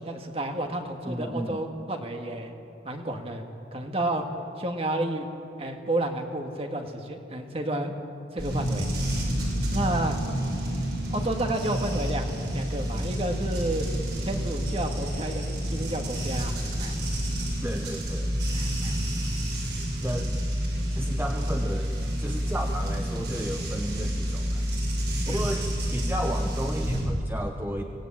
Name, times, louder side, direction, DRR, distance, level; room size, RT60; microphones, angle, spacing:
voice 1, 0.0-2.5 2.8-3.4 3.7-4.2 4.6-5.3 5.6-8.0 8.3-8.9 9.7-10.1 11.1-13.9 14.3-17.0 18.5-18.9 25.3-25.6, right 1 dB, 30° right, 4 dB, 1.8 m, -31 dB
voice 2, 1.1-1.6 17.6-18.3 20.0-20.4 20.9-21.9 22.2-24.6 25.3-25.6 25.9-27.8, equal, 10° right, 3 dB, 0.9 m, -33 dB
sound 1, 8.4-27.0, equal, 60° right, 7.3 m, -29 dB
24.0 x 19.0 x 8.7 m, 2.9 s
head